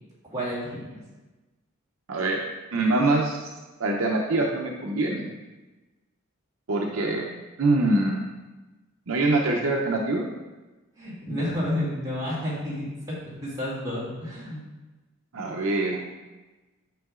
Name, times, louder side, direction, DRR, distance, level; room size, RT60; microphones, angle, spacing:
voice 1, 0.3-0.8 11.0-13.2 13.4-14.6, left 1 dB, 15° right, -8 dB, 2.3 m, -30 dB
voice 2, 2.1-2.4 2.7-3.4 3.8-5.3 6.7-7.2 7.6-8.3 9.1-10.2 15.3-16.0, right 2 dB, 70° right, 0 dB, 0.6 m, -24 dB
9.1 x 5.5 x 2.4 m, 1.2 s
head